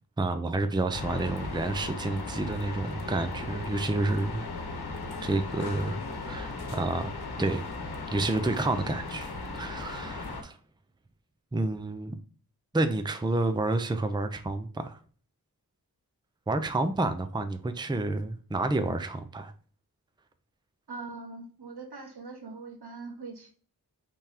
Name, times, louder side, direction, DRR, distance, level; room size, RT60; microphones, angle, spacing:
voice 1, 0.2-4.5 5.2-7.1 7.4-7.7 8.1-10.6 11.5-12.1 12.7-15.0 16.5-19.5, right 2 dB, 10° right, 0.5 m, -29 dB
sound 1, 0.9-10.4, left 3 dB, 75° left, 1.0 m, -37 dB
voice 2, 20.9-23.5, right 3 dB, 80° right, 1.4 m, -42 dB
5.4 x 3.4 x 2.8 m
wide cardioid pair, 70°, 39 cm